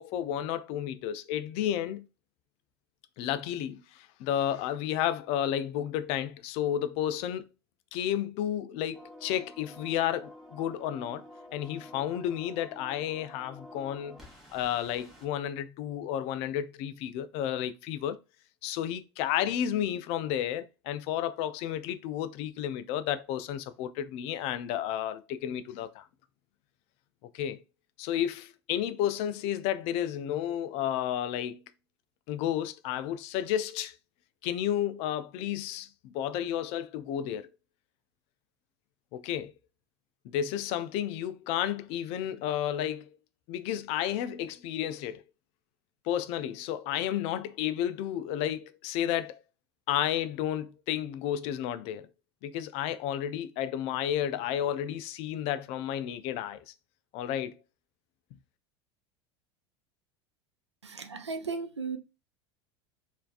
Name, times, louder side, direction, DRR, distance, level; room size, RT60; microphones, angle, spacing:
voice 1, 0.0-2.0 3.2-7.4 7.9-11.2 11.5-14.2 14.5-18.2 18.6-26.0 27.3-27.6 28.0-31.6 32.3-33.9 34.4-37.5 39.1-39.5 40.2-43.1 43.5-45.2 46.1-49.4 49.9-52.1 52.4-56.7 57.1-57.5, left 10 dB, 45° left, 0.3 m, -32 dB
sound 1, 8.9-15.3, left 1 dB, ahead, 0.9 m, -50 dB
voice 2, 60.8-62.0, right 4 dB, 90° right, 0.4 m, -35 dB
3.1 x 2.5 x 2.4 m
figure-of-eight pair, 80°, 14 cm